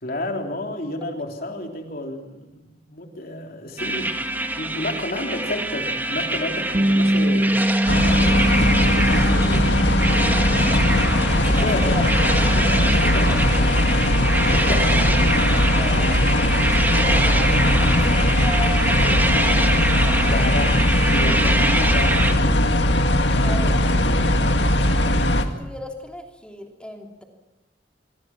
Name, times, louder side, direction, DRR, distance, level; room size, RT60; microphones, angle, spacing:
voice 1, 0.0-4.1 4.6-7.5 9.0-9.8 11.3-12.0 12.5-13.6 14.5-15.2 20.2-22.3, left 1 dB, 55° left, 3 dB, 3.5 m, -31 dB
sound 1, 3.8-22.3, right 1 dB, 10° right, 2.0 m, -25 dB
Bass guitar, 6.7-13.0, equal, 30° right, 1.2 m, -24 dB
sound 2, 7.9-25.5, left 1 dB, 75° left, 2.1 m, -19 dB
voice 2, 11.6-12.0 12.9-13.0 13.3-13.8 14.5-14.8 15.4-15.5 15.8-16.4 17.0-19.6 23.4-23.8 25.5-27.2, equal, 5° left, 2 dB, 3.0 m, -36 dB
25.5 x 25.0 x 6.1 m, 1.0 s
head